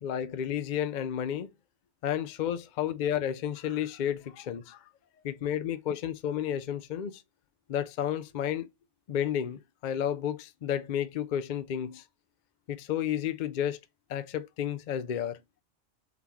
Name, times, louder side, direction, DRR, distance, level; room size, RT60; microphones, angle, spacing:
voice 1, 0.0-1.5 2.0-4.8 5.2-7.2 7.7-8.7 9.1-12.0 12.7-13.8 14.1-15.4, left 10 dB, 55° left, 0.5 m, -31 dB
3.9 x 2.9 x 3.5 m
omnidirectional pair, 1.2 m